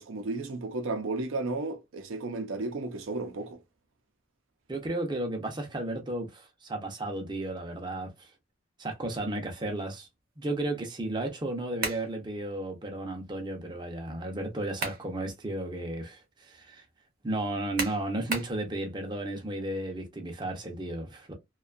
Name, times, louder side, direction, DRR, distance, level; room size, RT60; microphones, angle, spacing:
voice 1, 0.0-3.6, right 3 dB, 80° right, 0.5 m, -33 dB
voice 2, 4.7-8.3 8.8-10.1 10.4-16.9 17.2-21.3, right 1 dB, 20° right, 0.5 m, -34 dB
sound 1, 11.8-12.1 14.5-15.1 15.6-15.7 17.8-18.6, right 3 dB, 45° right, 0.8 m, -33 dB
2.6 x 2.2 x 2.3 m
head